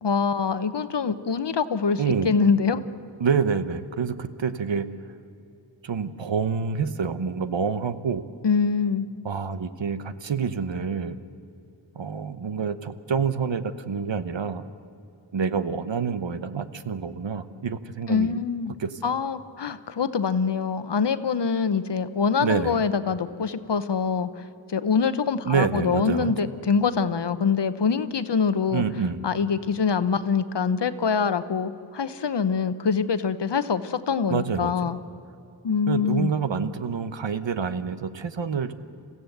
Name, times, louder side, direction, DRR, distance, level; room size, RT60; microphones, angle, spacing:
voice 1, 0.0-2.8 8.4-9.1 18.1-18.7 19.0-28.8 29.2-35.0 35.6-36.3, left 5 dB, 60° left, 12 dB, 0.9 m, -24 dB
voice 2, 2.0-2.3 3.2-4.9 5.8-8.2 9.2-11.2 11.9-14.6 15.3-18.4 18.8-19.1 22.4-22.8 25.4-26.3 28.7-29.2 34.3-34.9 35.9-38.7, right 6 dB, 70° right, 11 dB, 1.0 m, -27 dB
27.5 x 15.5 x 7.9 m, 2.7 s
wide cardioid pair, 95°, 46 cm